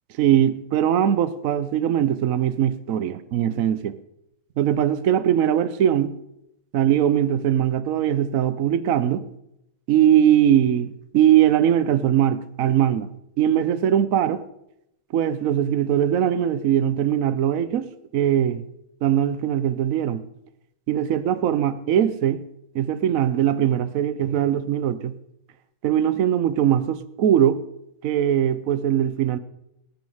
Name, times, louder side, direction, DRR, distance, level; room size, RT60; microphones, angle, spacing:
voice 1, 0.2-4.0 4.6-6.1 6.7-9.2 9.9-13.1 13.4-14.4 15.1-18.6 19.0-20.2 20.9-22.4 22.7-25.1 25.8-27.6 28.0-29.4, right 10 dB, 70° right, 0.7 m, -21 dB
18.5 x 9.4 x 4.9 m
omnidirectional pair, 2.4 m